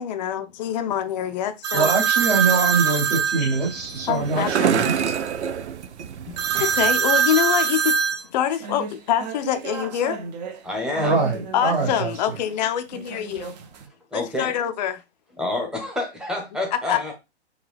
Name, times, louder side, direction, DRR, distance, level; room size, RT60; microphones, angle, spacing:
voice 1, 0.0-1.9 3.4-3.5 4.1-5.2 6.3-8.0 8.3-10.2 11.5-13.5 14.1-15.0 16.9-17.1, left 10 dB, 40° left, 0.4 m, -25 dB
sound 1, 1.6-4.1 6.4-10.6 11.0-12.1 12.9-13.8, right 7 dB, 40° right, 0.6 m, -25 dB
voice 2, 1.7-4.9 6.5-6.7 11.0-12.1, right 4 dB, 60° right, 1.9 m, -23 dB
sound 2, 3.4-7.1, right 8 dB, 85° right, 0.5 m, -27 dB
voice 3, 10.6-11.3 13.9-14.5 15.4-17.1, left 2 dB, ahead, 0.7 m, -29 dB
3.8 x 2.3 x 3.3 m
hypercardioid pair, 125°, 33 cm